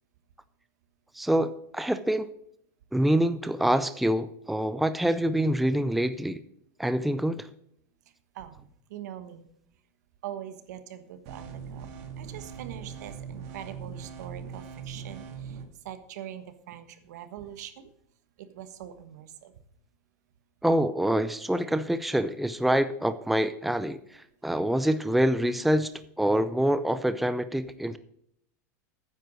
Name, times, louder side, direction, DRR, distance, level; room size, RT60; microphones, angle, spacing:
voice 1, 1.1-2.3 2.9-6.4 6.8-7.5 20.6-25.9 26.2-28.0, right 1 dB, ahead, 12 dB, 0.5 m, -26 dB
voice 2, 8.3-9.5 10.2-11.9 12.2-15.6 15.8-17.9 18.4-19.5 23.8-23.9, right 10 dB, 80° right, 11 dB, 1.3 m, -43 dB
sound 1, 11.3-15.6, right 7 dB, 60° right, 1.9 m, -41 dB
9.6 x 7.9 x 6.2 m, 0.69 s
supercardioid pair, 140°, 9 cm